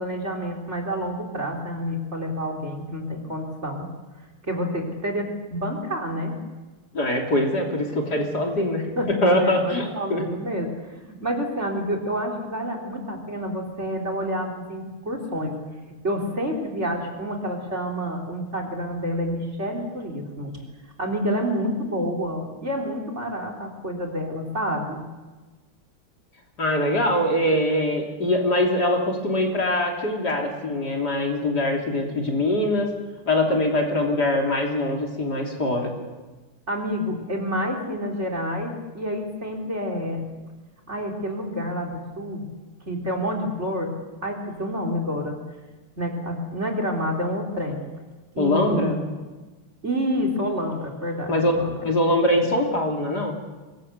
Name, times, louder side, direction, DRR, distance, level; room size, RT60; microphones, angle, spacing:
voice 1, 0.0-3.9 4.4-6.4 9.0-15.6 16.0-20.6 21.0-25.0 36.7-40.3 40.9-42.4 42.9-43.9 44.2-45.4 46.0-47.8 48.4-48.9 49.8-51.7, equal, 30° right, 4 dB, 3.9 m, -28 dB
voice 2, 6.9-10.2 26.6-32.9 33.3-35.9 48.4-49.0 51.3-51.5 51.8-53.3, left 1 dB, 45° left, 1 dB, 3.8 m, -23 dB
24.5 x 21.0 x 8.1 m, 1.2 s
omnidirectional pair, 2.4 m